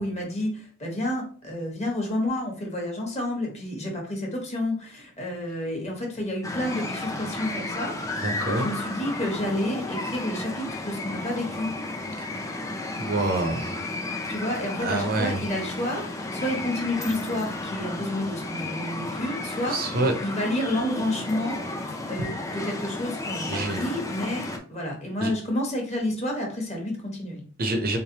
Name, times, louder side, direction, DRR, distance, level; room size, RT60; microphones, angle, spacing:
voice 1, 0.0-11.7 14.3-16.1 16.3-19.8 20.2-21.6 21.8-24.4 24.7-27.4, left 1 dB, 30° left, 0 dB, 1.2 m, -30 dB
sound 1, 6.4-24.6, left 2 dB, 15° left, 0.4 m, -33 dB
voice 2, 8.2-8.7 12.2-12.3 13.0-13.8 14.8-15.4 19.7-20.1 23.5-23.8 25.2-25.3 27.6-28.0, right 2 dB, 45° right, 5 dB, 0.6 m, -26 dB
3.6 x 3.2 x 2.8 m, 0.43 s
head